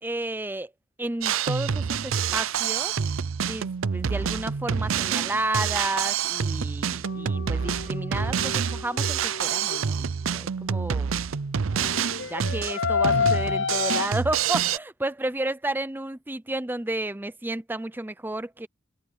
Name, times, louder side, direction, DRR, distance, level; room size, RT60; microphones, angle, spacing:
voice 1, 0.0-0.7 1.0-2.9 3.4-11.1 11.8-11.9 12.2-18.7, right 2 dB, 10° right, 0.6 m, -32 dB
Drum kit, 1.2-14.8, right 7 dB, 75° right, 0.6 m, -27 dB
sound 1, 7.1-10.1 11.8-14.1, left 6 dB, 60° left, 0.5 m, -29 dB
head